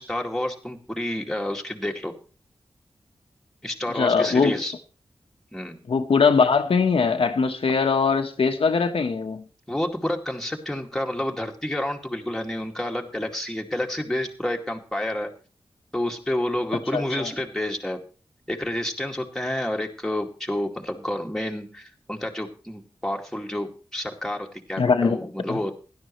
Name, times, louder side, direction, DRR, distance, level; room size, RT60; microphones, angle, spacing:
voice 1, 0.0-2.1 3.6-4.7 5.5-5.8 9.7-15.3 15.9-18.0 18.5-25.7, left 1 dB, 5° left, 2.4 m, -29 dB
voice 2, 4.0-4.6 5.9-9.4 16.9-17.3 24.8-25.2 25.5-25.6, left 5 dB, 80° left, 1.3 m, -21 dB
16.5 x 12.0 x 3.2 m
wide cardioid pair, 90°, 9 cm